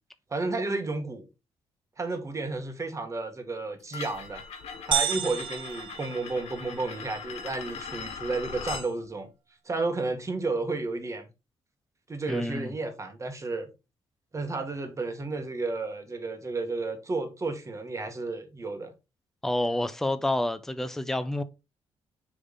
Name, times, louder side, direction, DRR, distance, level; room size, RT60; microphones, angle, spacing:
voice 1, 0.3-1.2 2.0-4.4 4.9-9.3 9.6-11.2 12.1-13.7 14.3-18.9, right 3 dB, 30° right, 1.6 m, -32 dB
sound 1, 3.9-8.9, left 6 dB, 85° left, 1.2 m, -40 dB
sound 2, 4.9-6.9, right 8 dB, 55° right, 0.6 m, -31 dB
voice 2, 12.3-12.7 19.4-21.4, left 1 dB, 5° left, 0.6 m, -28 dB
6.7 x 3.6 x 4.0 m
cardioid pair, 95°, 10 cm